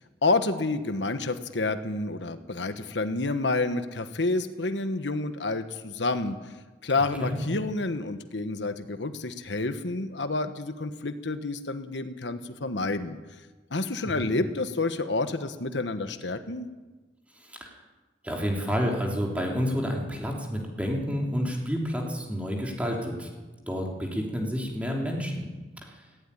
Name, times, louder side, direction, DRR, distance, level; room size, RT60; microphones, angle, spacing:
voice 1, 0.2-6.5 6.8-13.2 13.7-16.7, left 3 dB, 80° left, 9 dB, 1.3 m, -29 dB
voice 2, 17.3-17.8 18.2-23.3 23.7-25.5 25.9-26.0, equal, 10° right, 0 dB, 3.4 m, -29 dB
17.5 x 16.0 x 10.0 m, 1.2 s
head